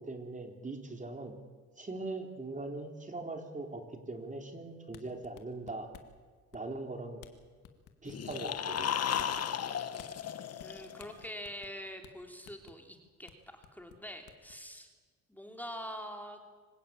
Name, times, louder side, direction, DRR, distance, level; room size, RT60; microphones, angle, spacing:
voice 1, 0.1-1.3 1.8-5.9 6.5-7.2 8.0-9.0, right 2 dB, 25° right, 4 dB, 3.4 m, -41 dB
sound 1, 4.8-6.2 6.5-6.9 7.2-7.3 7.6-8.8 9.2-9.4 10.0-10.1 10.6-10.7 11.0-11.8 12.0-12.1 12.5-12.8 13.3-13.4 13.6-14.5, left 12 dB, 90° left, 2.1 m, -53 dB
sound 2, 8.1-11.2, left 9 dB, 55° left, 1.4 m, -35 dB
voice 2, 10.6-14.9 15.3-16.5, equal, 5° left, 4 dB, 3.2 m, -45 dB
26.0 x 16.5 x 8.8 m, 1.5 s
cardioid pair, 90°, 30 cm